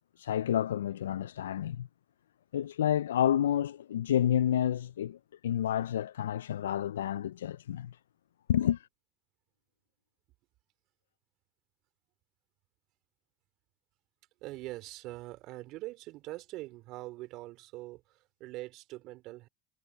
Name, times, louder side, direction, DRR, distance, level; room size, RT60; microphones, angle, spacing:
voice 1, 0.2-1.9 2.5-5.2 5.4-8.0 8.5-8.9, left 10 dB, 85° left, 0.3 m, -29 dB
voice 2, 14.4-19.5, right 18 dB, 60° right, 2.9 m, -43 dB
hypercardioid pair, 85°, 0 cm